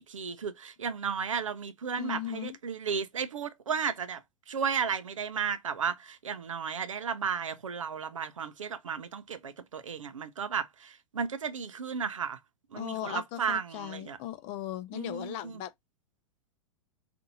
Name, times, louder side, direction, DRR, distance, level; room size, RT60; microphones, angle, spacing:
voice 1, 0.0-4.2 4.5-12.4 12.7-14.2 14.9-15.6, right 6 dB, 90° right, 0.5 m, -34 dB
voice 2, 2.0-2.6 12.8-15.7, left 13 dB, 45° left, 0.5 m, -37 dB
2.6 x 2.5 x 3.9 m
hypercardioid pair, 100°, 16 cm